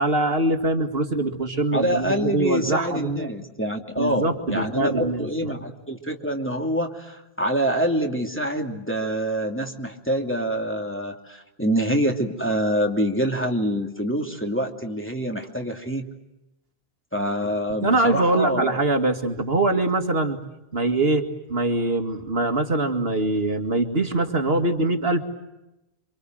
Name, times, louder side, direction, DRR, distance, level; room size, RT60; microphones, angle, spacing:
voice 1, 0.0-3.3 4.0-5.3 17.8-20.4 20.7-21.2 21.5-25.2, right 2 dB, 65° right, 6 dB, 2.4 m, -23 dB
voice 2, 1.7-16.0 17.1-18.8, equal, 10° left, 2 dB, 2.8 m, -26 dB
27.5 x 26.0 x 7.8 m, 0.93 s
omnidirectional pair, 1.1 m